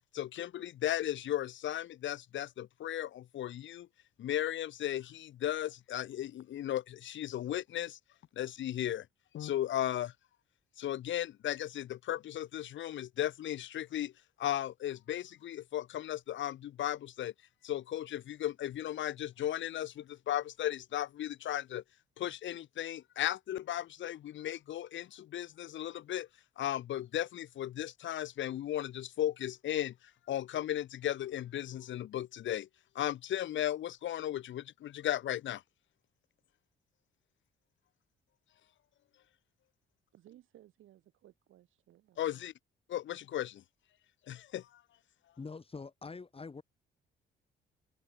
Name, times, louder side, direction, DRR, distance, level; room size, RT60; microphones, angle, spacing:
voice 1, 0.1-3.9 4.2-8.0 8.4-9.1 9.3-10.1 10.8-14.1 14.4-17.3 17.6-21.8 22.2-26.3 26.6-30.0 30.3-32.7 33.0-35.6 42.2-42.5 42.9-43.6 44.3-44.8, left 12 dB, 70° left, 1.8 m, -36 dB
voice 2, 40.1-42.5, right 13 dB, 80° right, 7.4 m, -60 dB
voice 3, 45.4-46.6, left 4 dB, 30° left, 3.4 m, -44 dB
cardioid pair, 90°, 20 cm